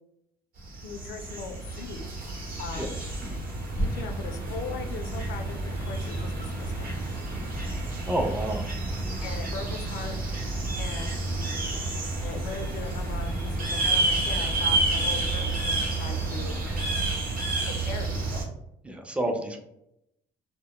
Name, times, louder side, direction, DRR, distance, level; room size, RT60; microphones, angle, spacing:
sound 1, 0.6-18.4, right 2 dB, 55° right, 0.8 m, -30 dB
voice 1, 0.8-2.0 2.6-3.0 3.7-6.9 9.2-10.2 10.8-11.7 12.2-16.6 17.6-18.5 19.2-19.5, left 5 dB, 80° left, 6 dB, 0.4 m, -39 dB
voice 2, 8.1-8.6 9.0-9.4 18.8-19.6, right 1 dB, 5° right, 3 dB, 0.4 m, -30 dB
sound 2, 11.8-17.1, right 1 dB, 80° right, 0.5 m, -40 dB
2.1 x 2.1 x 2.8 m, 0.81 s
cardioid pair, 110°, 17 cm